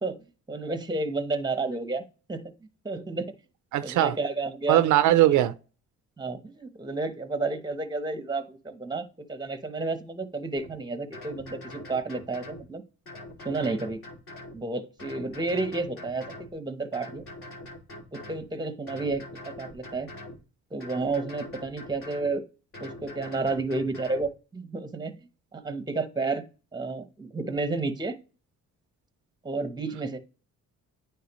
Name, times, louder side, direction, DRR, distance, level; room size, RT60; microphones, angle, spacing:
voice 1, 0.0-2.0 2.3-2.5 2.8-3.3 3.8-4.8 5.3-5.4 6.2-12.8 13.4-14.0 14.5-16.3 16.5-17.2 18.1-20.1 20.7-22.4 22.8-25.1 25.5-26.4 26.7-28.1 29.4-30.2, right 3 dB, 15° right, 0.9 m, -31 dB
voice 2, 3.7-4.1 4.7-5.5, right 13 dB, 75° right, 0.5 m, -20 dB
sound 1, 10.6-10.7 11.1-12.6 13.1-14.6 15.0-16.5 16.9-18.5 18.9-20.4 20.8-22.3 22.7-24.3, left 1 dB, 45° left, 2.6 m, -43 dB
9.4 x 3.4 x 3.0 m
cardioid pair, 90°, 30 cm